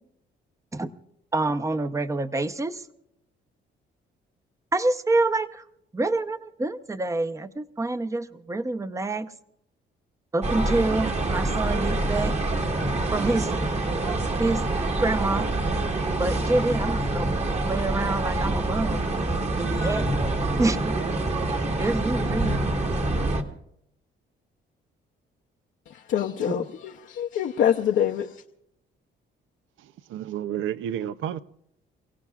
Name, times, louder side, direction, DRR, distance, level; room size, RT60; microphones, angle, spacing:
voice 1, 1.3-2.8 4.7-5.6 5.9-9.3 10.3-12.3 13.1-13.7 14.4-15.5 16.2-17.4 17.6-19.0 19.6-20.2 20.6-21.0 21.8-22.6, right 2 dB, 15° right, 0.8 m, -27 dB
sound 1, 10.4-23.4, right 2 dB, 35° right, 1.6 m, -26 dB
voice 2, 25.9-28.4, left 9 dB, 70° left, 0.8 m, -25 dB
voice 3, 29.8-31.4, right 10 dB, 80° right, 0.6 m, -31 dB
29.5 x 17.0 x 2.4 m
cardioid pair, 90°, 20 cm